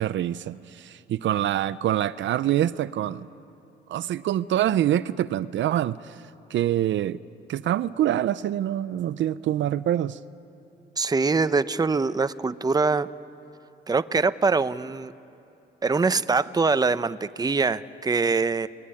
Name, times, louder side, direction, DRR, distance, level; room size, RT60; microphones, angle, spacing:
voice 1, 0.0-3.3 3.9-6.2 6.5-7.2 7.5-10.2, right 12 dB, 70° right, 16 dB, 0.6 m, -25 dB
voice 2, 11.0-13.1 13.9-15.1 15.8-18.7, right 4 dB, 20° right, 13 dB, 0.8 m, -23 dB
27.5 x 21.0 x 9.9 m, 2.7 s
cardioid pair, 90°, 20 cm